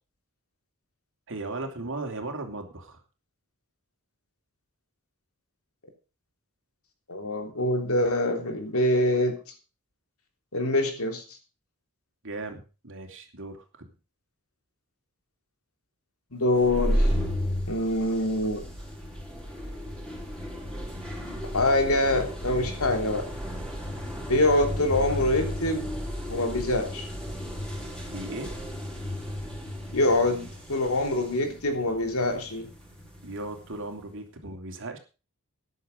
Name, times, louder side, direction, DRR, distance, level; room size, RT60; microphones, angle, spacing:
voice 1, 1.3-3.0 12.2-13.9 28.1-28.5 33.2-35.0, right 2 dB, 60° right, 4 dB, 2.9 m, -37 dB
voice 2, 7.1-9.3 10.5-11.2 16.3-17.1 17.7-18.6 21.2-23.2 24.3-25.9 26.3-27.1 29.9-32.7, left 1 dB, 70° left, 5 dB, 3.4 m, -25 dB
sound 1, 16.5-33.9, equal, 5° left, 5.6 m, -33 dB
13.5 x 10.5 x 5.2 m, 0.33 s
head